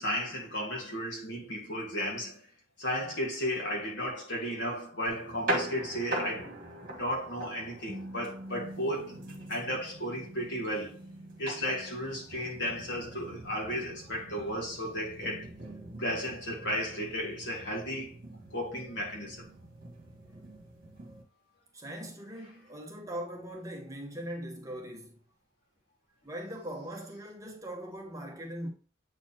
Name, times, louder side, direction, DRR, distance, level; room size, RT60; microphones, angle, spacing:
voice 1, 0.0-2.4 2.8-6.5 7.0-11.0 11.4-15.5 16.0-18.2 18.5-19.5, equal, 60° left, 2.0 m, -34 dB
sound 1, 5.1-21.2, right 1 dB, 45° right, 1.6 m, -41 dB
voice 2, 21.7-25.2 26.2-28.7, right 1 dB, 15° right, 1.0 m, -40 dB
7.7 x 4.3 x 2.9 m
head